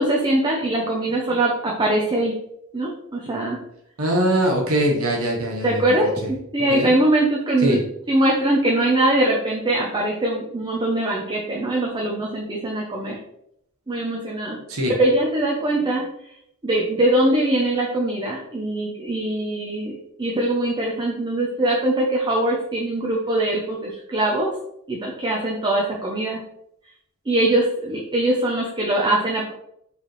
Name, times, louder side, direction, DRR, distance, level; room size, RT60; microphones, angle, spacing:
voice 1, 0.0-2.3 2.7-3.6 5.6-7.8 8.1-13.2 13.9-14.6 15.0-16.0 16.6-24.5 24.9-26.4 27.3-29.5, right 1 dB, 20° right, -2 dB, 0.6 m, -22 dB
voice 2, 4.0-6.3 6.7-6.9 7.6-7.8 14.7-14.9, right 1 dB, 75° right, -1 dB, 1.0 m, -22 dB
4.6 x 3.3 x 3.1 m, 0.76 s
head